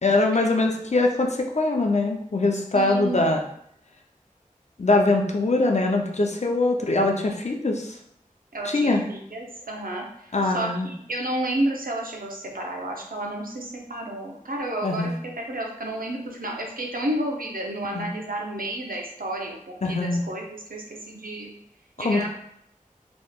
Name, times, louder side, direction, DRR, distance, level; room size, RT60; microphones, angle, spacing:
voice 1, 0.0-3.4 4.8-8.0 8.6-9.0 10.3-10.9 14.8-15.1 17.9-18.1 19.8-20.2 22.0-22.3, left 2 dB, 50° left, 2 dB, 0.5 m, -22 dB
voice 2, 2.7-3.3 8.5-15.1 15.5-21.5 22.0-22.3, right 1 dB, 85° right, 0 dB, 0.6 m, -31 dB
3.5 x 3.0 x 2.3 m, 0.71 s
wide cardioid pair, 45°, 14 cm